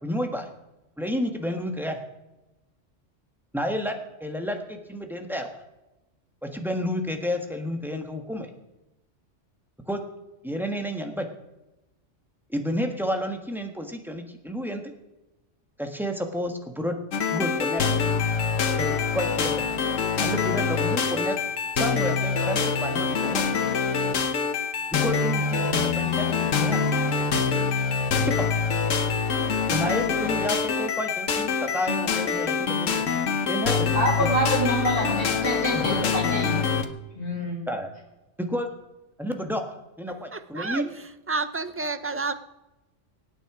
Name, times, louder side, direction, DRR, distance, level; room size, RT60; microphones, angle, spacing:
voice 1, 0.0-0.5 1.0-2.0 3.5-5.6 6.4-8.5 9.9-10.0 10.4-11.3 12.5-14.8 15.8-17.0 17.3-17.8 18.8-18.9 19.1-19.6 20.2-21.4 21.7-23.4 24.9-26.8 28.2-28.5 29.7-33.9 34.2-34.3 35.7-36.1 37.7-37.9 38.4-38.7 39.2-39.6 40.0-40.9, equal, ahead, 4 dB, 1.5 m, -30 dB
sound 1, 17.1-36.9, left 5 dB, 85° left, 1.4 m, -25 dB
voice 2, 33.9-36.5 37.1-37.6, equal, 45° left, -10 dB, 6.5 m, -26 dB
voice 3, 40.3-40.8 41.3-42.4, right 3 dB, 20° right, 11 dB, 0.3 m, -29 dB
23.5 x 9.1 x 5.0 m, 1.0 s
omnidirectional pair, 1.3 m